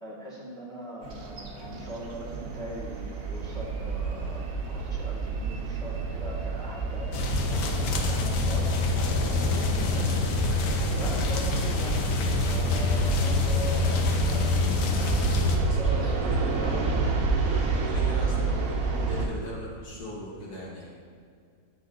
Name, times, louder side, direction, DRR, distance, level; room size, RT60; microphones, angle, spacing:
voice 1, 0.0-12.0 12.5-16.1, equal, ahead, -7 dB, 1.5 m, -41 dB
sound 1, 1.0-19.3, right 4 dB, 60° right, 1.2 m, -30 dB
sound 2, 7.1-15.6, left 4 dB, 90° left, 1.3 m, -26 dB
voice 2, 15.5-16.8 17.6-20.9, left 2 dB, 70° left, -6 dB, 2.1 m, -39 dB
8.3 x 4.5 x 3.8 m, 2.2 s
omnidirectional pair, 1.7 m